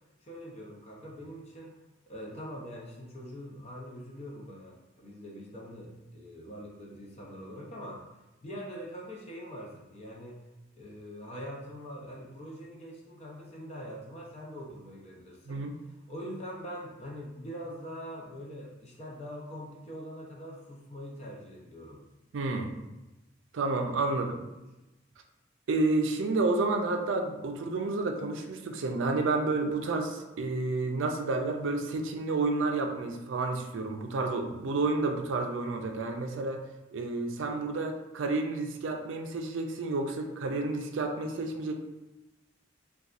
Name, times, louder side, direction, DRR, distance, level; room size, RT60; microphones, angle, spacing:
voice 1, 0.2-1.7 2.1-10.4 10.7-15.7 16.1-22.0 24.1-24.4, equal, 35° left, -2 dB, 0.6 m, -43 dB
voice 2, 15.5-15.8 22.3-22.7 23.5-24.4 25.7-36.6 36.9-41.7, right 3 dB, 75° right, 4 dB, 0.4 m, -30 dB
4.0 x 2.3 x 2.4 m, 1.0 s
head